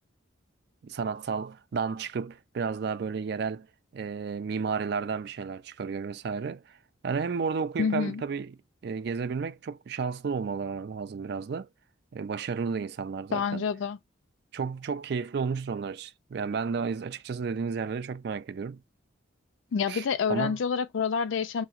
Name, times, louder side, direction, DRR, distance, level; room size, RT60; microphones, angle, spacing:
voice 1, 0.8-3.7 3.9-6.8 7.0-8.6 8.8-11.7 12.1-13.6 14.5-18.8 19.9-20.6, right 5 dB, 55° right, 0.3 m, -32 dB
voice 2, 7.8-8.2 13.3-14.0 19.7-21.6, left 6 dB, 70° left, 0.4 m, -28 dB
3.5 x 2.8 x 2.4 m
head